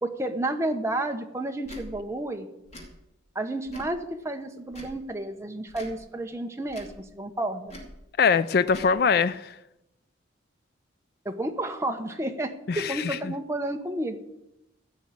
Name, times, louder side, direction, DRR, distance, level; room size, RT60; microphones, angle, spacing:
voice 1, 0.0-2.5 3.3-7.7 11.2-14.2, right 1 dB, 15° right, 5 dB, 1.0 m, -31 dB
Tick / Tick-tock, 1.6-1.9 2.6-2.9 3.6-4.0 4.7-5.0 5.7-6.0 6.7-7.0 7.7-7.9 8.7-8.9, equal, 35° left, 2.6 m, -43 dB
voice 2, 8.2-9.6 12.7-13.3, left 5 dB, 50° left, 14 dB, 0.4 m, -23 dB
14.5 x 6.3 x 8.4 m, 0.86 s
head